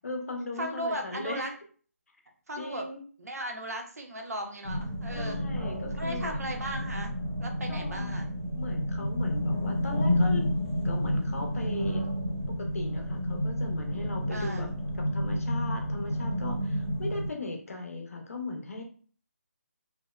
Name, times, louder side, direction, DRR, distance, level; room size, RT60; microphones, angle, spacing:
voice 1, 0.0-1.5 2.6-3.0 5.1-6.3 7.7-8.1 8.6-10.5 10.8-12.0 12.5-14.7 15.0-18.8, left 2 dB, 65° left, 3 dB, 0.7 m, -38 dB
voice 2, 0.6-1.5 2.5-2.9 3.2-5.4 5.9-7.1 7.4-8.3 14.3-14.7, right 1 dB, 80° right, 3 dB, 0.7 m, -36 dB
sound 1, 4.6-17.3, equal, ahead, 0.8 m, -30 dB
2.7 x 2.0 x 2.2 m, 0.43 s
hypercardioid pair, 170°, 8 cm